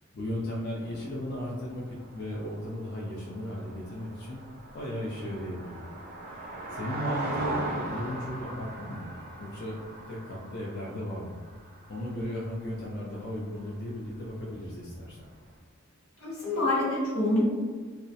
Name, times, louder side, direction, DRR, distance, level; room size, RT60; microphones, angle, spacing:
voice 1, 0.1-1.8 2.1-4.4 4.7-5.8 6.2-9.1 9.4-11.4 11.9-15.3, equal, 50° left, -5 dB, 0.3 m, -36 dB
sound 1, 0.8-13.7 14.0-14.2 14.4-14.5, right 2 dB, 40° right, 0.4 m, -40 dB
voice 2, 16.2-17.5, left 1 dB, 80° left, -6 dB, 0.9 m, -26 dB
2.3 x 2.0 x 2.7 m, 1.5 s
head